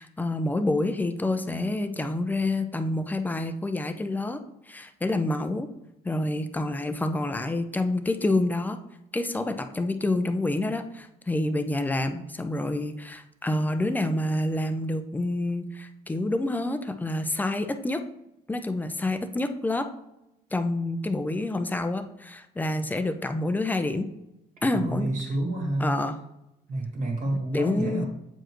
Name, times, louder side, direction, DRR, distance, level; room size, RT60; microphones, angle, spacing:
voice 1, 0.0-4.4 4.7-5.7 6.0-8.8 9.1-18.0 18.5-19.9 20.5-24.1 24.6-25.1 25.8-26.1 27.5-28.0, left 2 dB, 10° left, 8 dB, 0.6 m, -28 dB
voice 2, 24.7-25.9 26.7-28.1, right 2 dB, 50° right, -1 dB, 2.0 m, -29 dB
7.7 x 4.8 x 3.1 m, 0.88 s
cardioid pair, 110°, 17 cm